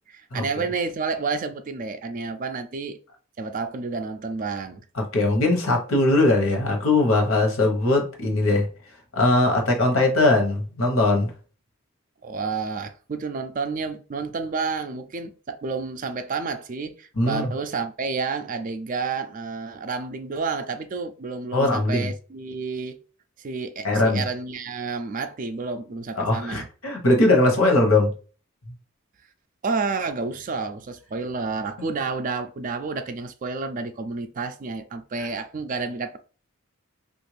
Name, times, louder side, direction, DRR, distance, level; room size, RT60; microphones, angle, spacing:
voice 1, 0.1-3.0 3.4-4.8 12.2-23.0 23.4-26.7 29.6-36.2, right 4 dB, 40° right, 0.3 m, -30 dB
voice 2, 5.0-8.7 9.1-11.3 17.2-17.5 21.5-22.1 23.8-24.2 26.2-28.1, left 2 dB, 70° left, 1.0 m, -20 dB
3.2 x 2.5 x 3.2 m
head